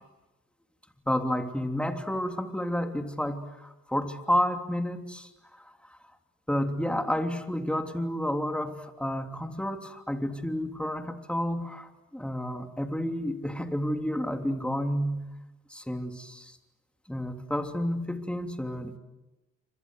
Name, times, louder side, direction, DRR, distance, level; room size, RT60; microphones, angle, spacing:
voice 1, 1.1-5.7 6.5-15.3 15.7-16.6 17.1-19.0, equal, 5° left, 4 dB, 3.1 m, -30 dB
29.0 x 25.5 x 7.9 m, 1.1 s
cardioid pair, 90°, 30 cm